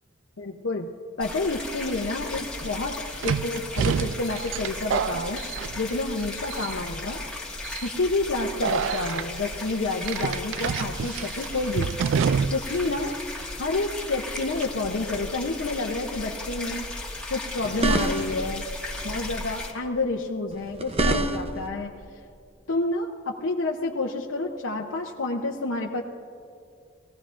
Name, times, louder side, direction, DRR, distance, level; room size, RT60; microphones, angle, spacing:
voice 1, 0.4-0.9 1.2-5.4 5.8-7.2 7.8-11.9 12.5-13.1 13.6-16.9 17.3-18.6 19.0-21.9 22.7-26.0, left 2 dB, 75° left, 0 dB, 0.7 m, -29 dB
sound 1, 1.2-19.7, left 2 dB, 5° left, 1.7 m, -36 dB
sound 2, 1.9-2.0 3.2-6.2 6.5-7.0 7.6-7.9 8.6-9.2 10.0-12.8 13.1-13.2 14.4-14.6, right 7 dB, 70° right, 0.3 m, -28 dB
sound 3, 17.6-18.5 20.5-21.7, right 2 dB, 30° right, 0.7 m, -26 dB
21.5 x 16.0 x 2.5 m, 2.3 s
head